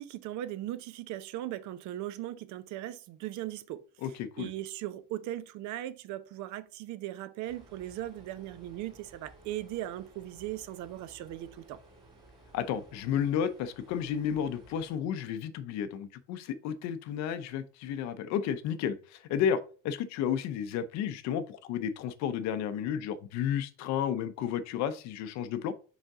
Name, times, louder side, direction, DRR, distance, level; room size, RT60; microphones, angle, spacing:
voice 1, 0.0-3.9 4.4-11.8, right 13 dB, 60° right, 0.7 m, -38 dB
voice 2, 4.0-4.5 12.5-19.6 19.8-25.7, left 8 dB, 55° left, 0.6 m, -32 dB
sound 1, 7.4-14.9, right 2 dB, 15° right, 2.4 m, -57 dB
5.3 x 5.0 x 3.5 m
cardioid pair, 165°, 32 cm